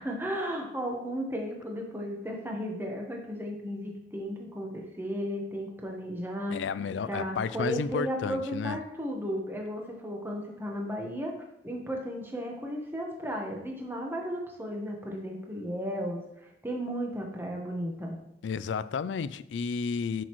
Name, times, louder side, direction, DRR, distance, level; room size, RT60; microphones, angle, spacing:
voice 1, 0.0-6.6 7.0-11.4 11.6-16.2 16.6-18.2, equal, 15° right, 1.1 m, -34 dB
voice 2, 6.5-8.8 18.4-20.2, left 5 dB, 85° left, 0.3 m, -32 dB
7.8 x 6.3 x 3.1 m
head